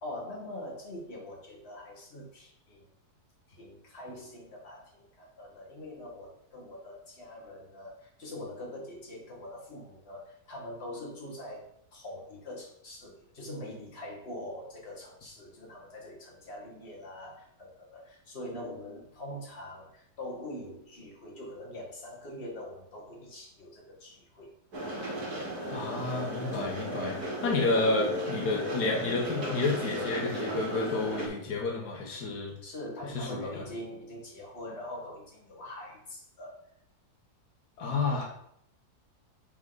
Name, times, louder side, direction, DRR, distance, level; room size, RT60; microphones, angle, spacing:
voice 1, 0.0-2.9 3.6-24.5 32.6-36.6, left 1 dB, 40° left, -3 dB, 2.0 m, -43 dB
sound 1, 24.7-31.3, equal, 75° right, 2.3 m, -34 dB
voice 2, 25.7-32.5 33.1-33.6 37.8-38.2, left 3 dB, 80° left, 0 dB, 1.7 m, -30 dB
8.2 x 3.9 x 4.0 m, 0.71 s
omnidirectional pair, 1.7 m